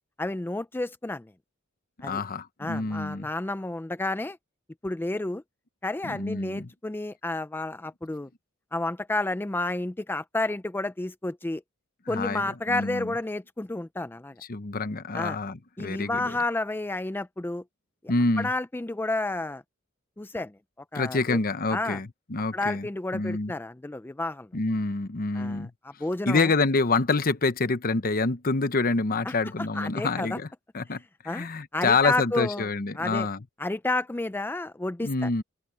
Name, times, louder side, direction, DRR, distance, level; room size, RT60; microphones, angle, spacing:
voice 1, 0.2-1.3 2.0-2.2 2.6-4.4 4.8-5.4 5.8-8.3 8.7-11.6 12.1-14.3 15.1-15.4 15.8-17.6 18.4-19.6 20.2-20.6 20.9-21.4 21.7-22.0 22.5-24.5 25.3-26.5 29.3-30.4 31.3-31.5 31.7-32.7 33.0-33.3 33.6-35.4, left 2 dB, 10° left, 0.4 m, -31 dB
voice 2, 2.0-3.3 6.0-6.7 12.1-13.1 14.5-16.4 18.1-18.5 20.9-22.9 23.1-23.5 24.5-25.7 26.3-30.5 30.7-33.4 35.0-35.4, left 3 dB, 45° left, 0.9 m, -27 dB
open air
head